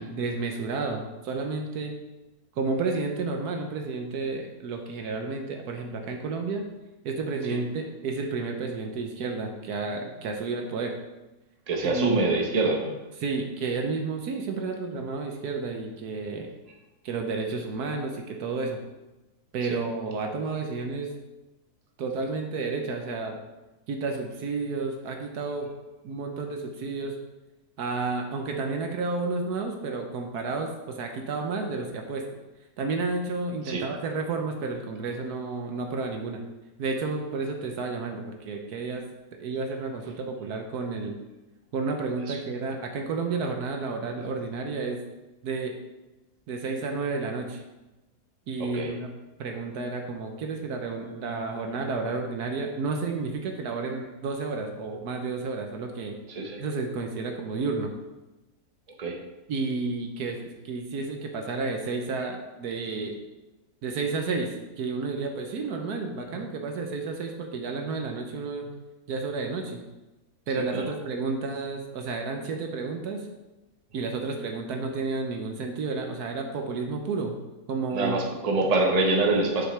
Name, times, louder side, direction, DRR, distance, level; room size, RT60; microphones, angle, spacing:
voice 1, 0.0-2.0 2.6-6.6 7.0-10.9 11.8-12.2 13.2-16.5 17.0-18.8 19.5-21.1 22.0-23.4 23.9-25.7 26.0-27.2 27.8-32.2 32.8-36.4 36.8-39.1 39.4-41.1 41.7-45.0 45.4-45.8 46.5-47.6 48.5-49.1 49.4-56.2 56.6-57.9 59.5-63.2 63.8-68.7 69.1-69.8 70.5-73.3 73.9-77.4 77.7-78.2, right 4 dB, 70° right, 3 dB, 1.2 m, -31 dB
voice 2, 11.7-12.9 19.6-19.8 33.6-33.8 42.3-42.4 48.6-48.9 56.3-56.6 59.0-59.2 70.7-70.9 77.9-79.7, right 2 dB, 25° right, 0 dB, 1.0 m, -25 dB
7.8 x 6.5 x 3.3 m, 1.1 s
omnidirectional pair, 1.8 m